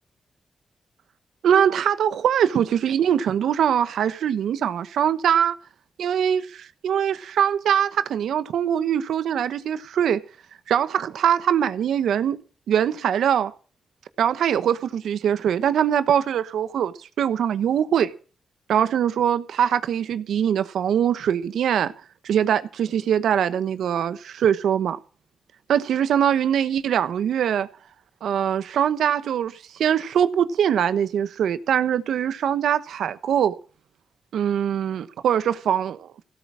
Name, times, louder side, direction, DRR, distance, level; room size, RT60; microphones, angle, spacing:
voice 1, 1.4-5.5 6.0-10.2 10.7-12.4 12.7-13.5 14.2-18.1 18.7-21.9 22.2-25.0 25.7-27.7 28.2-33.5 34.3-36.3, right 9 dB, 80° right, 1.0 m, -22 dB
16.5 x 8.3 x 7.4 m
supercardioid pair, 40°, 0 cm